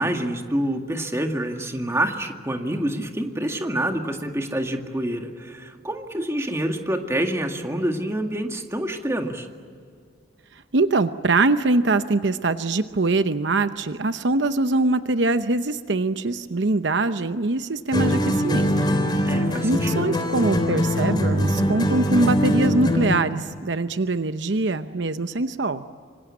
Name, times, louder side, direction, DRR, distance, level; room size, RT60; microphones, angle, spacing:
voice 1, 0.0-9.5 19.3-20.2, right 1 dB, 15° right, 4 dB, 2.1 m, -27 dB
voice 2, 10.7-18.7 19.6-25.8, right 2 dB, 70° right, 10 dB, 0.8 m, -23 dB
sound 1, 17.9-23.2, equal, 25° left, 3.4 m, -22 dB
26.0 x 25.5 x 8.6 m, 2.1 s
head